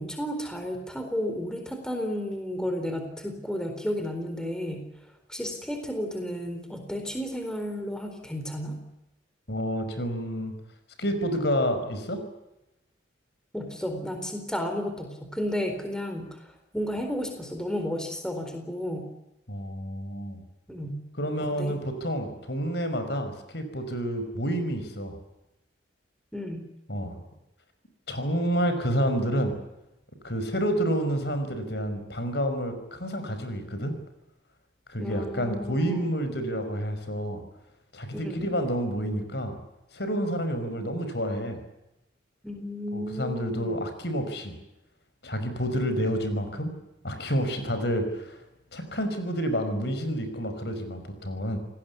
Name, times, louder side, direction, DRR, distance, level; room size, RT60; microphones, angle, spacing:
voice 1, 0.0-4.9 5.3-8.8 13.5-16.5 16.7-19.1 20.7-21.0 21.4-21.7 26.3-26.7 35.0-36.0 38.1-38.5 42.4-43.8, equal, 5° left, 5 dB, 4.2 m, -32 dB
voice 2, 9.5-10.5 11.0-12.2 19.5-20.4 21.2-25.2 26.9-27.2 28.1-29.6 30.2-34.0 34.9-37.4 37.9-39.6 39.9-41.6 42.9-44.5 45.2-46.7 47.0-48.4 48.7-51.6, equal, 60° left, 8 dB, 5.3 m, -29 dB
28.5 x 19.0 x 8.4 m, 0.92 s
head